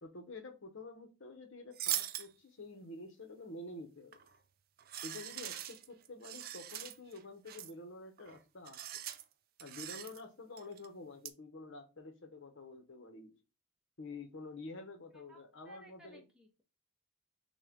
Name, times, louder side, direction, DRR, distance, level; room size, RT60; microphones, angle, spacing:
voice 1, 0.0-4.2 5.0-8.8 9.6-13.3 14.0-16.2, left 2 dB, 60° left, 0.8 m, -49 dB
sound 1, 1.7-2.3 4.1-4.4 4.8-7.2 7.5-7.7 8.2-8.4 8.7-9.2 9.6-10.2 10.6-10.9 11.2-11.3, right 12 dB, 45° right, 0.3 m, -41 dB
voice 2, 15.6-16.6, equal, 5° right, 0.7 m, -57 dB
6.2 x 2.2 x 3.5 m
head